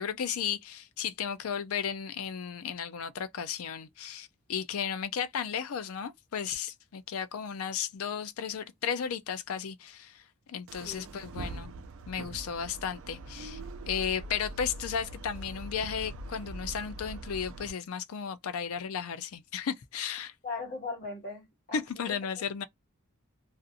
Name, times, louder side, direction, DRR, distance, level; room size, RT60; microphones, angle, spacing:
voice 1, 0.0-10.2 10.5-11.7 12.1-13.6 13.9-20.3 21.7-22.6, left 7 dB, 70° left, 0.4 m, -34 dB
sound 1, 10.7-17.7, right 2 dB, 65° right, 0.4 m, -42 dB
voice 2, 10.8-11.1 20.4-22.1, left 3 dB, 40° left, 1.3 m, -39 dB
2.5 x 2.4 x 2.6 m
head